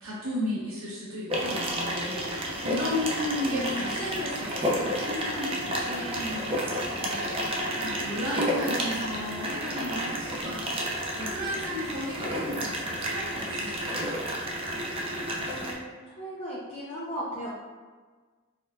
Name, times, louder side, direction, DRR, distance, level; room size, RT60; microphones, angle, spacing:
voice 1, 0.0-14.0, left 1 dB, 80° right, -7 dB, 1.1 m, -34 dB
sound 1, 1.3-15.7, equal, 30° right, 0.5 m, -31 dB
voice 2, 3.4-3.9 15.4-17.5, equal, 30° left, -8 dB, 0.5 m, -36 dB
4.3 x 2.5 x 2.3 m, 1.4 s
head